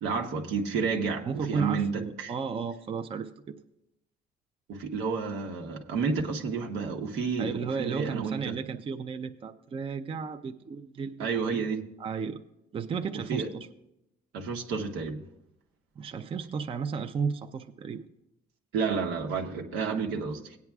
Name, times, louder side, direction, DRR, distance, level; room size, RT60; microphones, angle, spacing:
voice 1, 0.0-2.3 4.7-8.6 11.2-11.8 13.1-13.5 14.3-15.2 18.7-20.6, right 5 dB, 90° right, 1.3 m, -31 dB
voice 2, 1.2-3.3 7.4-11.6 12.0-12.4 12.7-13.7 16.0-18.1, right 5 dB, 30° right, 0.6 m, -33 dB
17.5 x 9.4 x 2.4 m
cardioid pair, 110°, 17 cm